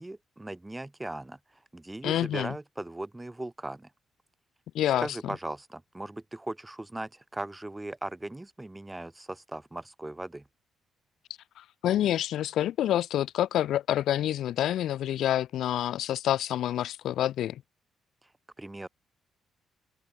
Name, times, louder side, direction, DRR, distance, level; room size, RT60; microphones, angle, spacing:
voice 1, 0.0-1.4 1.7-3.9 5.0-10.5 18.6-18.9, right 2 dB, 10° right, 2.7 m, -38 dB
voice 2, 2.0-2.5 4.7-5.1 11.6-17.6, left 12 dB, 80° left, 4.1 m, -27 dB
open air
cardioid pair, 115°, 0 cm